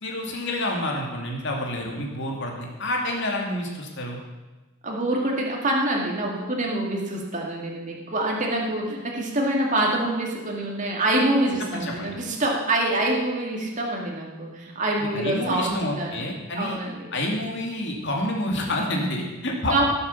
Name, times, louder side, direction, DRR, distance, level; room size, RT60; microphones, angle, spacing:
voice 1, 0.0-4.2 11.7-12.2 15.1-16.8 17.1-19.8, left 1 dB, 55° left, 0 dB, 2.7 m, -28 dB
voice 2, 4.8-16.2 16.6-17.1 19.7-19.8, right 1 dB, 35° right, -1 dB, 2.3 m, -25 dB
16.5 x 7.9 x 7.0 m, 1.2 s
head